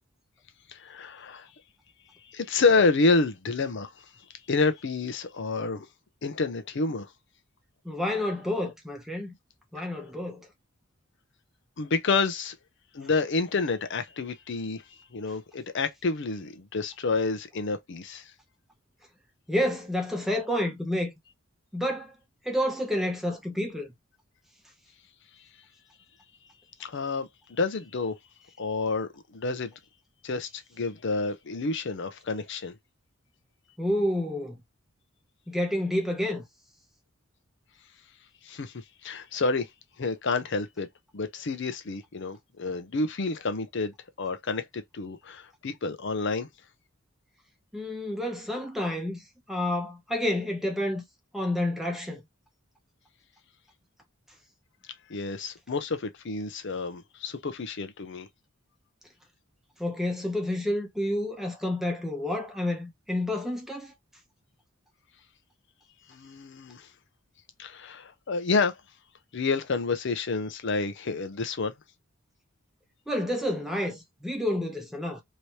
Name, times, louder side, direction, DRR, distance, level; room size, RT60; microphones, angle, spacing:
voice 1, 0.7-1.5 2.3-3.9 4.5-5.9 6.2-7.1 11.8-12.6 12.9-14.8 15.1-18.3 26.8-28.2 28.6-29.7 30.2-32.7 38.4-38.7 39.0-39.7 40.0-40.9 41.1-46.5 55.1-58.3 66.1-66.9 67.6-68.8 69.3-71.7, left 3 dB, 60° left, 0.6 m, -29 dB
voice 2, 7.8-9.3 9.7-10.5 19.5-21.1 21.7-22.1 22.4-23.9 33.8-34.6 35.5-36.4 47.7-49.2 49.5-51.0 51.3-52.2 59.8-63.9 73.1-75.2, left 1 dB, ahead, 0.8 m, -29 dB
3.1 x 2.7 x 3.1 m
head